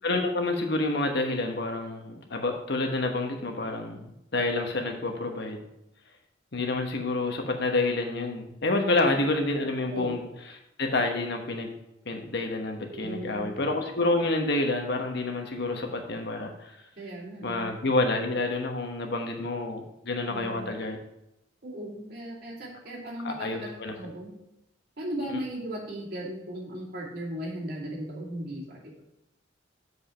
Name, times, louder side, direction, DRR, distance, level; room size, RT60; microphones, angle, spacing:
voice 1, 0.0-5.6 6.5-10.2 10.8-11.7 12.1-16.7 17.4-21.0 23.2-23.9, left 2 dB, 65° left, 4 dB, 1.2 m, -28 dB
voice 2, 12.9-13.6 17.0-17.8 20.3-20.7 21.6-24.3 25.0-28.9, right 1 dB, 55° right, -4 dB, 2.7 m, -37 dB
7.4 x 4.9 x 5.7 m, 0.84 s
head